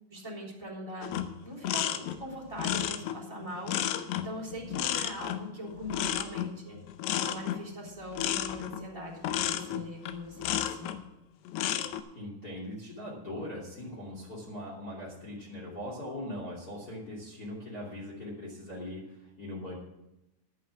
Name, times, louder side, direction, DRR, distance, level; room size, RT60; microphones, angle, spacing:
voice 1, 0.1-6.8 7.2-10.9, equal, 10° right, -2 dB, 2.4 m, -41 dB
sound 1, 1.0-11.0 11.5-12.0, left 11 dB, 80° left, 2.7 m, -32 dB
voice 2, 12.1-19.7, left 1 dB, 25° left, -3 dB, 2.1 m, -40 dB
11.0 x 8.7 x 6.0 m, 0.91 s
omnidirectional pair, 5.8 m